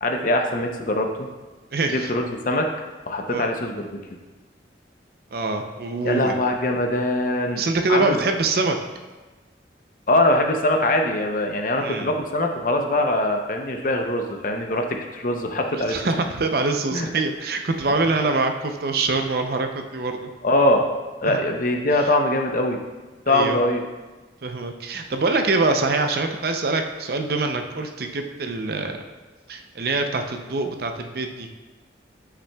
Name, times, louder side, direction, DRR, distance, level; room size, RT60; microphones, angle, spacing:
voice 1, 0.0-1.1 1.9-2.7 3.1-3.9 6.0-7.6 7.9-8.2 10.1-16.0 16.9-17.1 20.4-20.8 21.2-22.8 23.3-23.8, left 1 dB, 45° left, 3 dB, 0.6 m, -22 dB
voice 2, 1.7-2.1 3.3-3.5 5.3-6.3 7.6-8.8 11.8-12.1 15.7-20.3 21.2-21.4 23.3-23.6 24.4-29.0 29.5-31.5, right 3 dB, 55° right, 5 dB, 0.5 m, -24 dB
8.2 x 5.9 x 2.3 m, 1.2 s
head